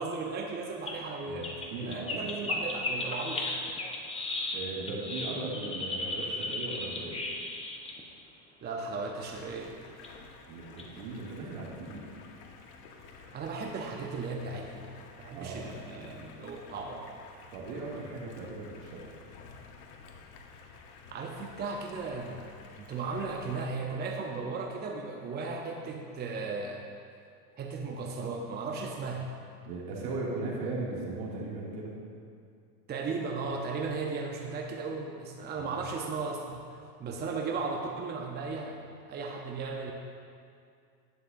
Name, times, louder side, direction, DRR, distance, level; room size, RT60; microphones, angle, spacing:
voice 1, 0.0-1.5 1.8-3.6 8.6-9.8 13.2-17.1 21.1-22.5 22.8-26.9 27.6-29.3 32.9-39.9, right 4 dB, 20° right, 1 dB, 0.7 m, -36 dB
sound 1, 0.9-1.0 1.4-8.0 9.3-9.4 10.0-10.1 10.7-10.8, left 2 dB, 15° left, 1.0 m, -35 dB
voice 2, 1.3-2.3 4.5-7.2 10.5-12.1 15.3-16.2 17.5-19.0 29.6-32.0 35.5-35.7, right 3 dB, 70° right, -4 dB, 2.5 m, -38 dB
Stream, 9.2-23.7, left 4 dB, 70° left, 1.2 m, -52 dB
11.5 x 9.8 x 2.6 m, 2.3 s
supercardioid pair, 120°, 46 cm